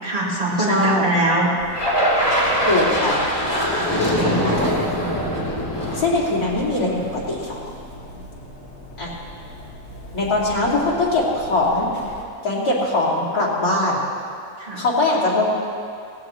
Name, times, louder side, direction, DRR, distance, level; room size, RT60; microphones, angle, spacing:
voice 1, 0.0-1.5 3.9-4.4 14.6-14.8, right 1 dB, 30° right, -7 dB, 3.2 m, -22 dB
voice 2, 0.7-1.1 2.7-3.2 4.3-4.9 5.9-7.6 9.0-9.1 10.1-11.9 12.4-14.0 14.8-15.5, left 2 dB, 70° left, -6 dB, 3.1 m, -21 dB
sound 1, 1.6-12.2, equal, 50° left, 2.7 m, -40 dB
sound 2, 1.7-7.1, equal, 15° left, 2.9 m, -22 dB
18.0 x 15.0 x 3.1 m, 2.4 s
omnidirectional pair, 1.7 m